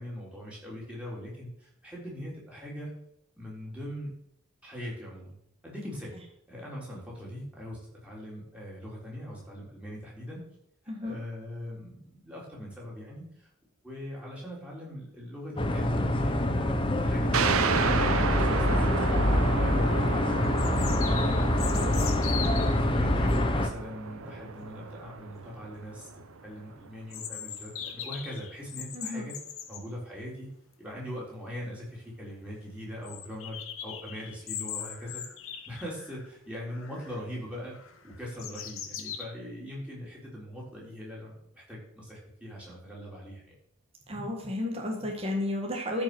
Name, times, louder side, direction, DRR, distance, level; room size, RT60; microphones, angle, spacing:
voice 1, 0.0-2.9 3.4-4.1 4.6-5.3 5.6-6.2 6.5-10.4 11.0-13.5 13.8-16.7 17.0-22.0 22.7-29.4 29.7-30.5 30.8-35.2 35.7-43.6, equal, 5° right, -5 dB, 3.6 m, -41 dB
sound 1, 15.6-23.7, left 1 dB, 25° left, 0.8 m, -25 dB
sound 2, 17.3-26.5, right 5 dB, 75° right, 0.8 m, -32 dB
sound 3, 20.6-22.8 27.1-29.8 31.5-31.6 31.8-31.9 32.3-32.4 33.0-36.3 36.7-37.2 37.7-39.2, left 9 dB, 70° left, 1.2 m, -40 dB
voice 2, 28.9-29.3 44.1-46.0, left 1 dB, 25° right, 1 dB, 1.6 m, -32 dB
14.0 x 5.3 x 6.2 m, 0.73 s
head